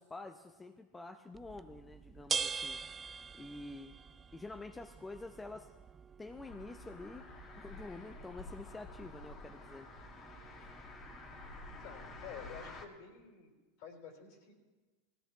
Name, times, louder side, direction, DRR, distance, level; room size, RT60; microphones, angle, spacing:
voice 1, 0.0-2.8 3.3-4.0 4.3-5.7 6.2-7.3 7.5-9.9 10.6-10.8, left 2 dB, 15° left, 7 dB, 0.6 m, -48 dB
sound 1, 1.3-12.8, right 5 dB, 25° right, 0.3 m, -45 dB
sound 2, 6.5-12.9, left 2 dB, 35° left, 1.6 m, -50 dB
voice 2, 11.7-13.5 13.8-14.5, left 7 dB, 65° left, 2 dB, 4.0 m, -50 dB
19.0 x 16.0 x 3.0 m, 1.2 s
hypercardioid pair, 105°, 0 cm